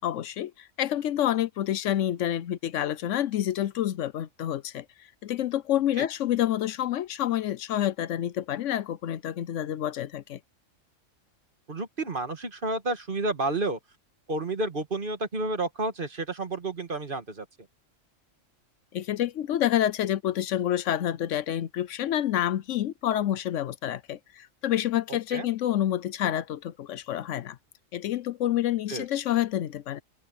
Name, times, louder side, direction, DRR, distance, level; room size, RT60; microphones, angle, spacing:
voice 1, 0.0-10.4 18.9-27.6 27.9-30.0, left 11 dB, 75° left, 1.0 m, -28 dB
voice 2, 11.7-13.8 14.3-17.5 25.3-25.5 28.9-29.1, right 2 dB, 45° right, 1.8 m, -30 dB
omnidirectional pair, 1.3 m